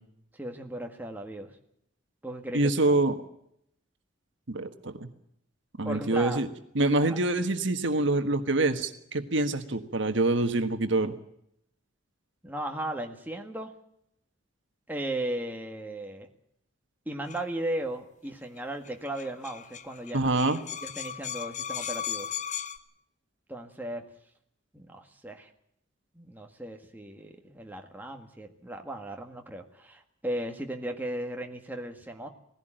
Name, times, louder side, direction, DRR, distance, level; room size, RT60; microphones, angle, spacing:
voice 1, 0.3-1.5 2.2-2.9 5.8-6.4 7.0-7.2 12.4-13.7 14.9-16.3 17.1-20.3 20.8-22.3 23.5-24.0 24.7-25.5 26.2-32.3, right 1 dB, 10° right, 3 dB, 1.7 m, -36 dB
voice 2, 2.5-3.2 4.5-5.1 5.8-6.5 6.7-11.1 20.1-20.6, right 2 dB, 65° right, 8 dB, 1.4 m, -26 dB
sound 1, 17.3-17.4 18.6-18.7 18.8-18.9 19.1-22.8, left 9 dB, 35° left, 1.0 m, -36 dB
19.0 x 16.0 x 9.0 m, 0.74 s
head